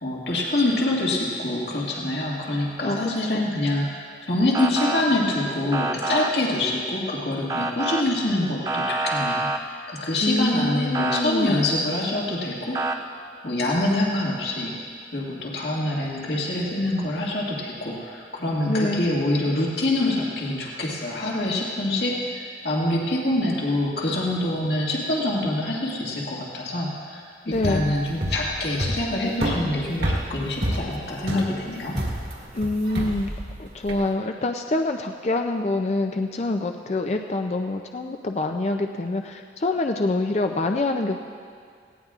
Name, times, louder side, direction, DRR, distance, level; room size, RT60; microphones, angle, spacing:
voice 1, 0.0-13.1 13.4-14.8 15.1-27.2 27.5-32.0, left 1 dB, 75° left, -3 dB, 1.9 m, -25 dB
voice 2, 2.8-3.4 10.2-11.6 18.7-19.1 27.5-27.9 32.5-33.3 33.6-41.2, left 2 dB, 40° left, 4 dB, 0.4 m, -26 dB
Motor vehicle (road) / Siren, 4.5-5.0 5.7-6.3 7.5-8.0 8.7-9.6 10.9-11.2 12.7-13.0, right 2 dB, 20° right, 0.6 m, -26 dB
sound 1, 27.5-34.1, equal, 60° right, 1.8 m, -29 dB
18.5 x 17.0 x 2.4 m, 2.2 s
head